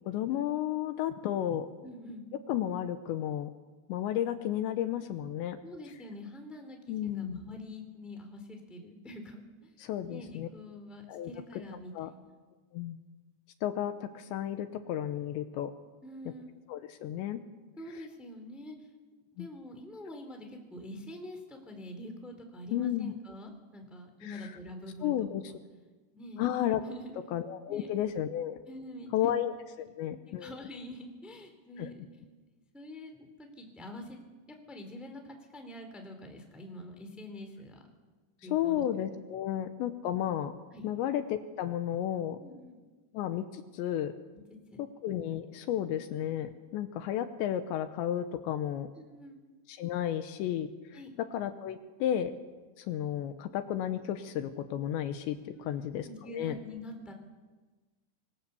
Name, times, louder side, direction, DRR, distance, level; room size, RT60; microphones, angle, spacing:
voice 1, 0.1-1.7 2.5-3.5 3.9-5.6 6.9-7.4 9.8-10.5 11.1-11.3 11.9-12.1 12.7-13.0 13.6-15.7 16.7-17.4 19.4-19.5 22.7-23.1 24.2-24.5 25.0-25.4 26.4-26.8 27.3-28.6 29.1-30.5 31.8-31.9 38.5-40.5 40.8-42.4 43.1-44.1 44.8-48.9 49.7-50.7 51.2-52.3 52.8-56.6, left 11 dB, 75° left, 9 dB, 3.0 m, -33 dB
voice 2, 1.8-2.2 5.6-9.7 10.0-12.4 16.0-16.5 17.8-18.7 19.4-25.3 26.1-26.4 26.8-27.2 27.7-27.9 28.7-29.3 29.8-29.9 30.4-32.2 32.7-34.2 34.5-37.8 38.4-38.8 40.7-40.9 42.4-42.8 44.7-44.8 48.9-49.4 50.9-51.1 55.5-57.1, left 1 dB, ahead, 5 dB, 2.2 m, -45 dB
26.0 x 21.0 x 7.0 m, 1.3 s
omnidirectional pair, 5.5 m